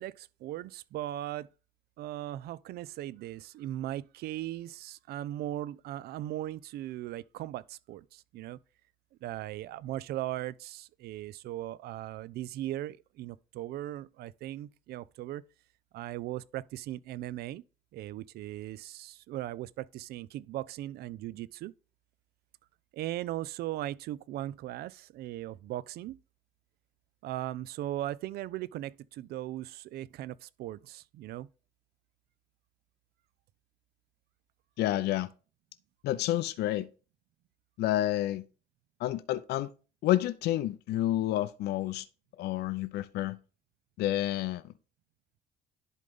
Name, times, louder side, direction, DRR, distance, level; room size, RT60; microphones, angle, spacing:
voice 1, 0.0-1.5 2.0-8.6 9.2-15.4 15.9-17.6 17.9-21.7 22.9-26.2 27.2-31.5, right 14 dB, 70° right, 0.4 m, -38 dB
voice 2, 34.8-35.3 36.0-36.9 37.8-38.4 39.0-39.7 40.0-42.0 42.4-43.4 44.0-44.7, left 14 dB, 75° left, 0.6 m, -29 dB
11.0 x 3.9 x 3.6 m
cardioid pair, 110°, 17 cm